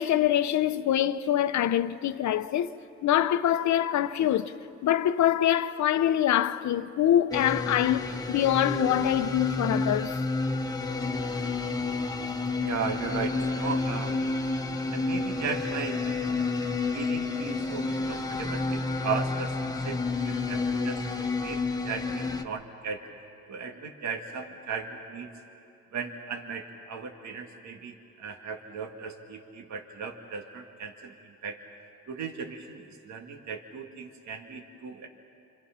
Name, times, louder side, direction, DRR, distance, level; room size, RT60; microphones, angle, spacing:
voice 1, 0.0-2.7 3.0-4.5 4.8-10.2, left 11 dB, 70° left, 0.9 m, -24 dB
sound 1, 7.3-22.4, left 3 dB, 10° left, 1.3 m, -30 dB
voice 2, 12.6-14.2 14.9-16.5 16.9-23.0 23.5-25.3 25.9-31.6 32.1-35.1, right 5 dB, 65° right, 2.0 m, -37 dB
29.5 x 25.5 x 5.9 m
cardioid pair, 90°, 30 cm